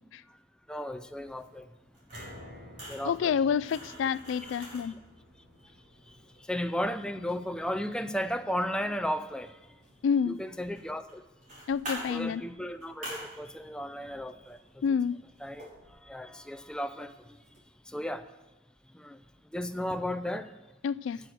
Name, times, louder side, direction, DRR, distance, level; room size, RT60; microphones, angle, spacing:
voice 1, 0.7-1.6 2.9-3.4 4.4-4.5 6.5-9.5 10.2-11.2 12.1-14.6 15.4-15.7 16.0-17.1 17.9-18.2 18.9-19.2 19.5-20.5, equal, 5° left, 0.4 m, -34 dB
sound 1, 1.0-17.6, right 1 dB, 40° right, 4.5 m, -49 dB
sound 2, 2.1-14.4 14.8-14.9 15.3-15.4, left 1 dB, 70° right, 4.8 m, -55 dB
voice 2, 3.1-4.9 10.0-10.4 11.7-12.4 14.8-15.2 20.8-21.2, left 7 dB, 80° left, 0.3 m, -28 dB
9.1 x 7.6 x 7.8 m
head